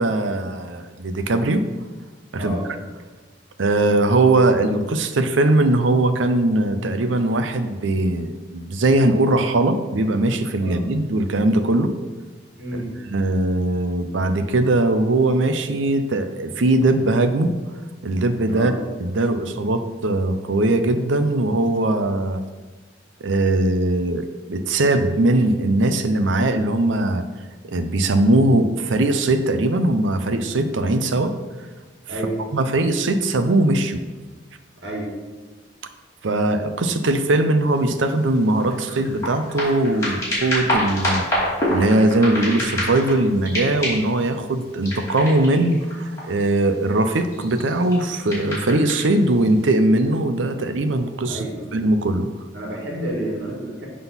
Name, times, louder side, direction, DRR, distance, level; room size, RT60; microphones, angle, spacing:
voice 1, 0.0-1.6 2.3-2.6 3.6-11.9 13.1-17.5 18.0-18.7 19.0-22.4 23.2-27.2 27.7-31.3 32.5-34.0 36.2-41.2 41.7-51.5 51.7-52.3, right 2 dB, 85° right, 9 dB, 0.6 m, -20 dB
voice 2, 12.6-12.9 18.4-18.7 32.1-32.4 34.8-35.1 51.3-51.7 52.5-53.9, right 1 dB, 70° right, -3 dB, 1.8 m, -29 dB
sound 1, 37.8-37.9 38.3-43.2 43.4-44.2 44.8-46.5 47.2-49.1 49.7-49.8, equal, 15° left, 2.5 m, -26 dB
7.9 x 3.7 x 5.7 m, 1.3 s
head